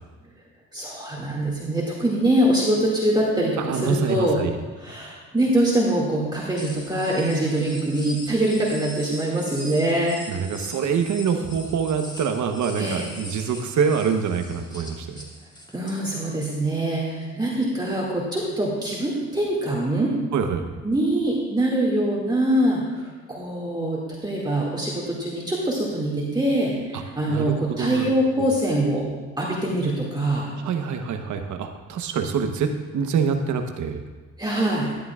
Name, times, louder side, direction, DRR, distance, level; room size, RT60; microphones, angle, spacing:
voice 1, 0.7-4.4 4.8-10.2 12.8-13.1 15.7-20.1 20.8-29.1 29.4-30.5 34.4-34.9, right 1 dB, 15° right, -5 dB, 2.1 m, -24 dB
voice 2, 3.6-4.6 10.3-15.3 20.3-20.7 26.9-27.0 27.3-28.1 28.4-28.5 30.6-34.0, right 6 dB, 75° right, 6 dB, 1.0 m, -25 dB
sound 1, 6.6-16.0, left 1 dB, 15° left, 2.5 m, -41 dB
13.5 x 11.0 x 2.4 m, 1.4 s
cardioid pair, 90°, 30 cm